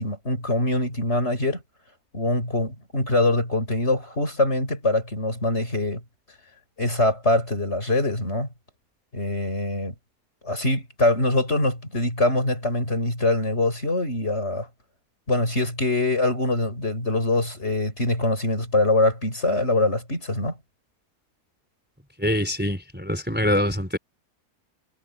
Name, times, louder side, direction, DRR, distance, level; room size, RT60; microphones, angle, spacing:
voice 1, 0.0-1.6 2.1-6.0 6.8-8.5 9.1-9.9 10.4-14.7 15.3-20.5, left 2 dB, 40° left, 6.6 m, -23 dB
voice 2, 22.2-24.0, equal, 5° right, 4.4 m, -24 dB
omnidirectional pair, 1.7 m